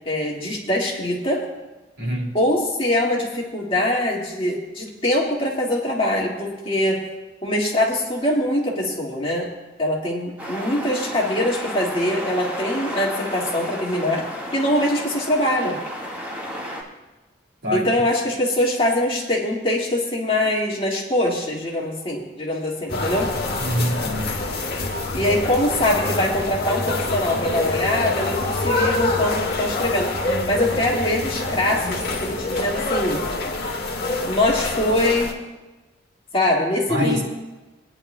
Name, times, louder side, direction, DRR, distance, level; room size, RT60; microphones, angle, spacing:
voice 1, 0.0-1.4 2.3-7.0 7.4-9.5 9.8-15.8 17.7-23.3 25.1-30.1 30.5-33.2 34.2-35.3 36.3-37.2, left 1 dB, 30° left, -3 dB, 1.9 m, -23 dB
voice 2, 2.0-2.3 17.6-18.0 23.6-24.3 31.4-31.6 36.9-37.2, equal, 85° right, -1 dB, 2.7 m, -25 dB
sound 1, 10.4-16.8, equal, 10° right, 1.6 m, -32 dB
sound 2, 22.9-35.3, left 2 dB, 55° left, 1.6 m, -26 dB
21.5 x 10.0 x 2.2 m, 1.1 s
head